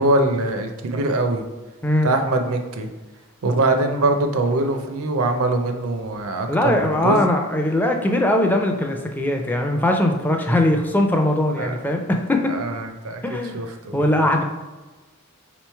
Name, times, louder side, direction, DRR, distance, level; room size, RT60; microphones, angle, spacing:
voice 1, 0.0-1.4 2.0-2.9 3.4-7.2 11.6-11.7 12.5-14.3, right 2 dB, 75° right, 6 dB, 0.5 m, -23 dB
voice 2, 1.8-2.2 6.5-12.6 13.2-13.6 13.9-14.4, left 1 dB, 10° left, 3 dB, 0.4 m, -20 dB
3.7 x 3.0 x 4.5 m, 1.2 s
head